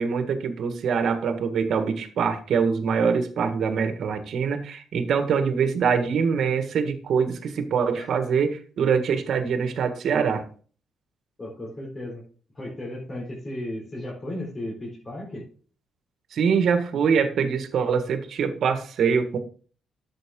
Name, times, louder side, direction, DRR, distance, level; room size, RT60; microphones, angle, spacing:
voice 1, 0.0-10.4 16.3-19.4, right 6 dB, 65° right, 8 dB, 1.6 m, -24 dB
voice 2, 11.4-12.2 12.5-15.4, left 1 dB, 30° left, -5 dB, 4.4 m, -35 dB
11.0 x 7.7 x 3.7 m, 0.41 s
cardioid pair, 90°, 0 cm